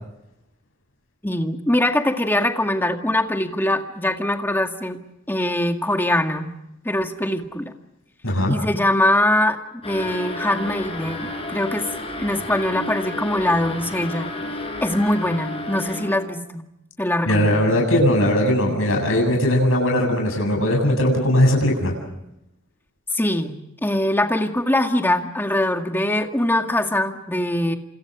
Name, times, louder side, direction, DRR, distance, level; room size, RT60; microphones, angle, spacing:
voice 1, 1.2-5.0 5.3-6.5 6.8-7.7 8.5-9.6 9.8-11.8 12.2-14.3 14.8-16.7 17.0-17.6 23.1-27.8, left 1 dB, 10° left, 5 dB, 2.0 m, -22 dB
voice 2, 8.2-8.6 17.3-21.9, left 1 dB, 90° left, 1 dB, 7.7 m, -19 dB
sound 1, 9.8-16.4, left 2 dB, 30° left, 7.6 m, -32 dB
29.5 x 27.5 x 5.0 m, 0.85 s
head